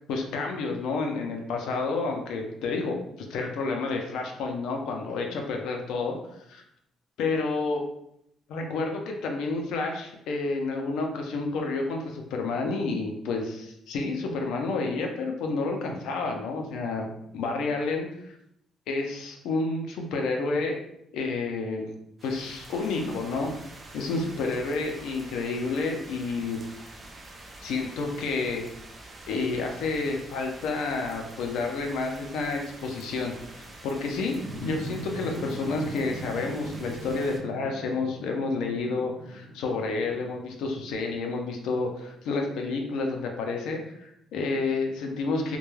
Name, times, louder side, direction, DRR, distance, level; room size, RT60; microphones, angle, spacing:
voice 1, 0.1-3.0 3.3-6.2 6.5-6.6 7.2-7.8 8.5-17.1 17.3-18.4 18.9-20.7 21.1-21.9 22.2-23.5 23.9-26.6 27.6-28.6 29.3-33.4 33.8-45.6, left 3 dB, 85° left, 2 dB, 0.5 m, -30 dB
sound 1, 22.2-37.4, right 2 dB, 25° right, 0.4 m, -46 dB
sound 2, 34.4-41.0, right 1 dB, 35° left, 1.1 m, -41 dB
2.2 x 2.2 x 3.1 m, 0.76 s
cardioid pair, 155°, 0 cm